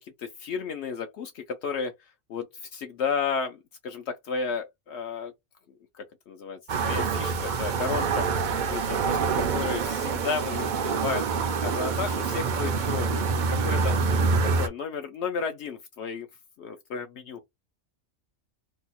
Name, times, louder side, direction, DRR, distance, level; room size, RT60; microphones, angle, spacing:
voice 1, 0.0-1.9 2.3-5.3 6.0-8.3 8.7-11.3 11.6-14.0 14.5-16.3 16.6-17.4, left 5 dB, 70° left, 0.8 m, -33 dB
sound 1, 6.7-14.7, right 5 dB, 60° right, 0.5 m, -26 dB
2.8 x 2.3 x 4.0 m
omnidirectional pair, 1.2 m